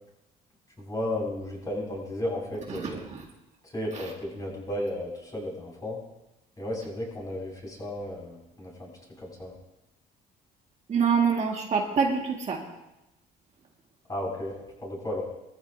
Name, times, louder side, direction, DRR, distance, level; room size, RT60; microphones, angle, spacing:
voice 1, 0.8-3.0 3.6-6.0 6.6-8.9 9.2-9.5 14.1-15.2, left 1 dB, 20° left, -2 dB, 6.2 m, -34 dB
voice 2, 2.7-3.3 3.9-4.1 10.9-12.6, right 6 dB, 40° right, 0 dB, 1.9 m, -26 dB
21.5 x 14.0 x 2.8 m, 0.94 s
cardioid pair, 110°, 17 cm